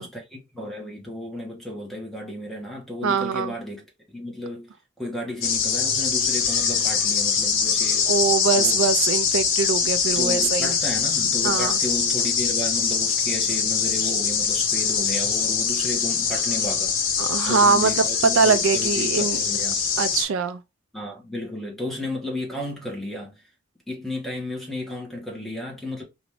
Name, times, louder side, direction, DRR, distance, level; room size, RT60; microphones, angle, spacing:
voice 1, 0.0-3.8 4.1-4.7 5.0-8.2 8.5-8.8 10.0-19.8 20.9-23.4 23.9-26.0, left 1 dB, ahead, 1.1 m, -33 dB
voice 2, 3.0-3.5 8.1-10.8 11.4-11.8 17.2-19.4 20.0-20.6, right 5 dB, 75° right, 0.4 m, -22 dB
sound 1, 5.4-20.2, left 6 dB, 80° left, 0.8 m, -23 dB
2.9 x 2.6 x 3.2 m
head